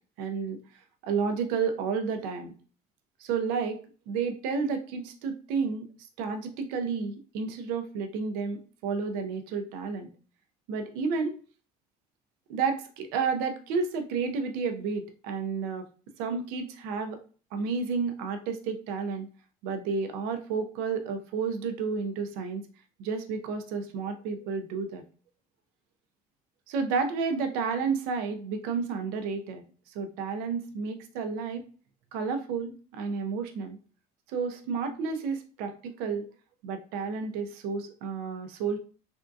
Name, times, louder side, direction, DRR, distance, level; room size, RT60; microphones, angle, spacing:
voice 1, 0.2-0.6 1.0-2.5 3.2-5.9 6.2-10.1 10.7-11.4 12.5-15.9 16.2-17.2 17.5-19.3 19.6-22.7 23.0-25.0 26.7-31.6 32.1-33.8 34.3-36.2 36.6-38.8, right 5 dB, 85° right, 7 dB, 0.6 m, -31 dB
3.5 x 2.6 x 2.3 m, 0.39 s
cardioid pair, 155°, 16 cm